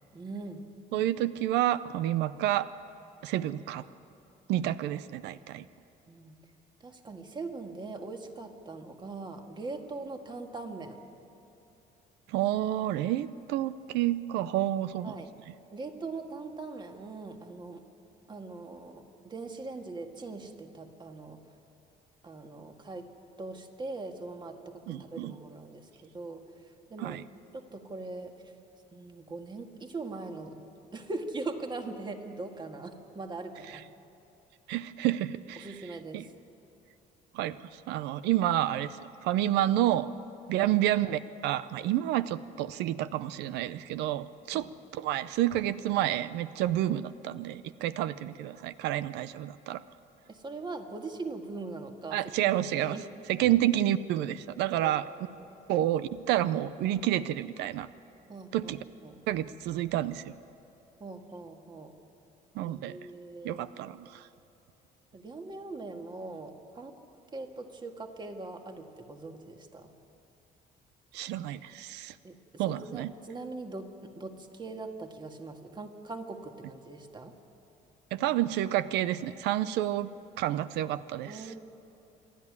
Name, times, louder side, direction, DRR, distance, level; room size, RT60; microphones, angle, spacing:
voice 1, 0.1-0.7 6.1-6.4 6.8-11.0 15.0-15.3 15.7-17.8 18.3-21.4 22.2-23.1 23.4-27.2 27.5-28.3 28.9-30.7 30.9-33.8 35.6-36.3 40.6-40.8 44.5-44.7 50.3-52.5 52.8-53.1 54.7-55.1 55.4-55.6 58.3-58.7 59.0-59.2 61.0-62.0 62.6-63.7 65.1-67.0 67.3-69.9 72.2-72.4 72.6-77.3 81.3-81.6, right 3 dB, 25° right, 5 dB, 1.8 m, -41 dB
voice 2, 0.9-2.7 3.2-3.9 4.5-5.6 12.3-15.1 24.9-25.3 27.0-27.2 34.7-35.7 36.1-36.3 37.3-40.1 40.5-49.8 52.1-53.0 53.3-55.1 55.7-57.9 58.5-58.8 59.3-60.3 62.5-63.0 63.4-64.3 71.1-72.2 72.6-73.1 78.1-80.1 80.4-81.5, right 13 dB, 90° right, 15 dB, 0.6 m, -29 dB
27.0 x 11.0 x 9.7 m, 2.9 s
cardioid pair, 110°, 17 cm